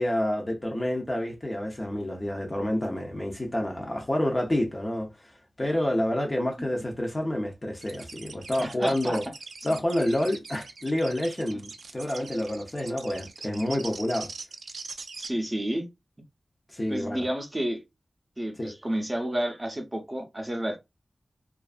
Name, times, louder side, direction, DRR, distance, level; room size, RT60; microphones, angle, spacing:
voice 1, 0.0-5.3 5.6-9.2 9.6-14.3 16.7-17.3 18.6-18.7, left 1 dB, 25° left, 0.6 m, -28 dB
sound 1, 7.8-15.3, right 4 dB, 90° right, 0.3 m, -42 dB
voice 2, 8.6-9.2 15.2-15.9 16.9-17.8 18.4-20.8, right 1 dB, 20° right, 0.6 m, -30 dB
2.5 x 2.4 x 2.4 m
wide cardioid pair, 105°, 0 cm